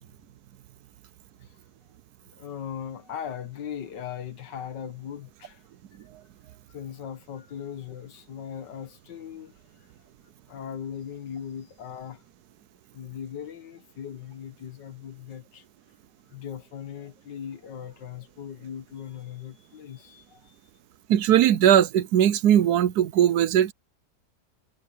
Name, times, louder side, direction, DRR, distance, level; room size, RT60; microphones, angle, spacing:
voice 1, 2.3-5.6 6.7-9.5 10.5-12.2 12.9-15.6 16.3-20.5, left 8 dB, 85° left, 1.9 m, -39 dB
voice 2, 21.1-23.7, right 10 dB, 70° right, 1.2 m, -19 dB
omnidirectional pair, 1.8 m